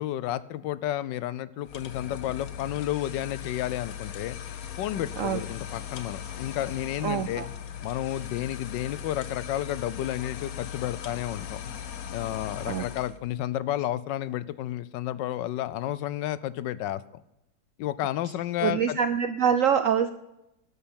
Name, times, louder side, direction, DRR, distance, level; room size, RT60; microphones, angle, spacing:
voice 1, 0.0-4.4 4.8-7.4 7.8-11.6 12.1-17.0 17.8-19.0, left 13 dB, 75° left, 16 dB, 1.2 m, -31 dB
sound 1, 1.7-13.2, left 9 dB, 55° left, 1.2 m, -39 dB
voice 2, 7.0-7.5 12.7-12.9 18.6-20.1, right 8 dB, 70° right, 10 dB, 0.7 m, -25 dB
12.5 x 5.6 x 8.6 m, 0.88 s
omnidirectional pair, 2.0 m